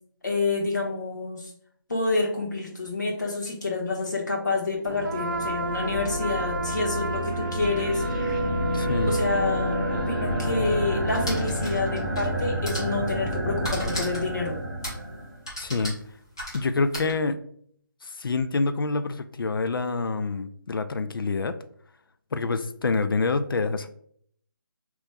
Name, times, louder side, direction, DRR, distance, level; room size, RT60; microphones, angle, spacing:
voice 1, 0.2-1.5 1.9-8.4 9.1-9.8 10.1-14.6, left 3 dB, 55° left, -1 dB, 1.2 m, -28 dB
sound 1, 4.8-15.4, equal, 25° right, 0.9 m, -29 dB
Trumpet, 5.0-11.5, right 2 dB, 65° right, 0.6 m, -34 dB
voice 2, 8.7-9.1 15.6-16.0 16.5-17.4 18.0-21.6 22.3-23.9, left 3 dB, 75° left, 10 dB, 0.4 m, -27 dB
sound 2, 11.1-12.3 12.6-13.0 13.6-14.3 14.8-15.1 15.4-17.1, equal, 10° left, 0.5 m, -35 dB
5.0 x 3.0 x 2.2 m, 0.64 s
hypercardioid pair, 180°, 12 cm